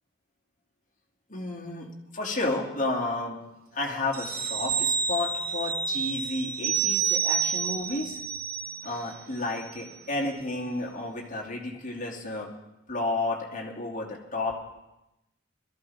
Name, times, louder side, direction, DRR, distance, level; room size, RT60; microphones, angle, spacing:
voice 1, 1.3-1.9 2.1-3.4 3.7-8.2 8.8-12.5 12.9-14.5, left 2 dB, 35° left, -3 dB, 2.7 m, -31 dB
sound 1, 4.1-9.2 9.6-9.7, right 7 dB, 45° right, 0.9 m, -29 dB
21.0 x 14.0 x 3.6 m, 0.93 s
head